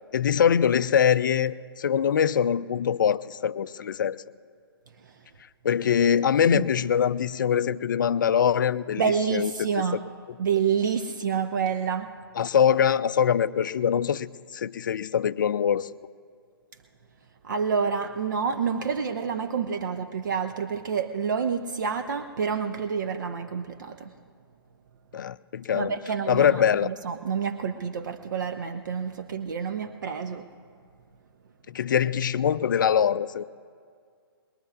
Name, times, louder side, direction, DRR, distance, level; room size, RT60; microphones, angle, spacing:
voice 1, 0.1-4.2 5.6-9.0 9.3-9.7 12.4-15.9 25.1-25.9 26.3-26.9 31.7-33.4, left 8 dB, 55° left, 0.4 m, -23 dB
voice 2, 9.0-10.0 10.4-12.1 17.4-24.1 25.7-30.5, right 6 dB, 50° right, 0.6 m, -28 dB
22.0 x 21.0 x 2.4 m
figure-of-eight pair, 125°, 13 cm